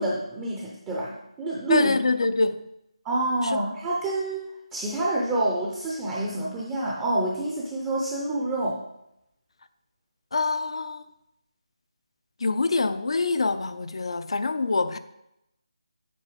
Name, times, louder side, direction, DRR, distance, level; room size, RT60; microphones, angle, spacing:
voice 1, 0.0-2.0 3.0-8.8, right 2 dB, 10° right, 0.6 m, -27 dB
voice 2, 1.7-2.6 3.4-3.6 10.3-11.0 12.4-15.0, left 3 dB, 60° left, 0.5 m, -25 dB
7.7 x 5.3 x 5.0 m
figure-of-eight pair, 170°, 3 cm